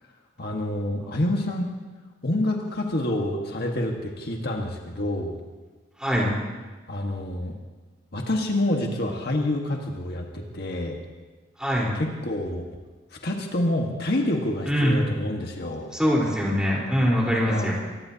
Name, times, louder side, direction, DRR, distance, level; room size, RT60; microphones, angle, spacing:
voice 1, 0.4-1.7 2.2-5.4 6.9-7.5 8.1-11.0 11.9-12.6 13.2-15.9 17.4-17.7, left 1 dB, 60° left, 1 dB, 1.6 m, -27 dB
voice 2, 6.0-6.3 11.6-11.9 14.7-15.0 15.9-17.7, equal, 5° right, -4 dB, 4.1 m, -23 dB
23.5 x 19.5 x 2.9 m, 1.3 s
head